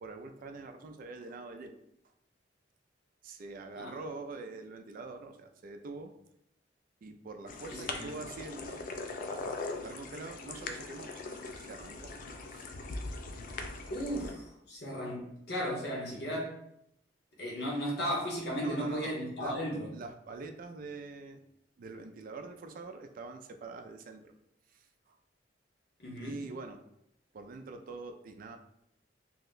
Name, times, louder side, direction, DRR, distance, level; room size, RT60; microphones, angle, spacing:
voice 1, 0.0-1.8 3.2-6.1 7.0-8.9 9.3-12.1 12.5-12.7 18.6-19.1 19.4-19.6 19.9-21.4 21.8-24.3 24.7-25.2 26.2-26.8 27.3-28.6, right 3 dB, 50° right, 6 dB, 0.3 m, -45 dB
sound 1, 7.5-14.3, left 3 dB, 50° left, 0.4 m, -41 dB
voice 2, 7.7-8.1 13.9-16.6 17.4-19.9 26.0-26.4, equal, 65° left, -3 dB, 1.0 m, -35 dB
2.8 x 2.1 x 3.8 m, 0.76 s
head